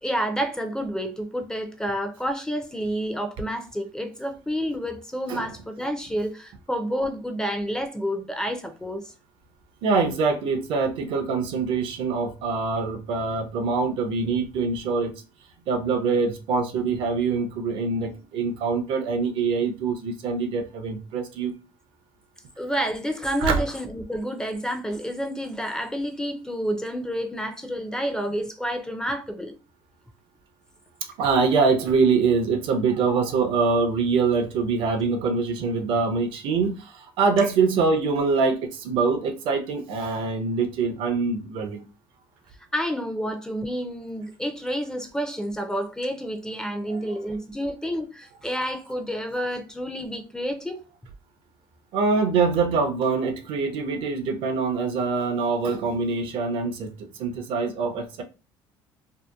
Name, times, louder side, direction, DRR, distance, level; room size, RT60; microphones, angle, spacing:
voice 1, 0.0-9.1 22.6-29.5 42.7-50.8, equal, 5° left, 0.4 m, -29 dB
voice 2, 9.8-15.2 15.7-21.5 23.4-23.6 31.2-41.8 46.9-47.2 51.9-56.9 57.2-58.2, right 4 dB, 70° right, 0.5 m, -24 dB
2.7 x 2.1 x 2.3 m
supercardioid pair, 100°, 9 cm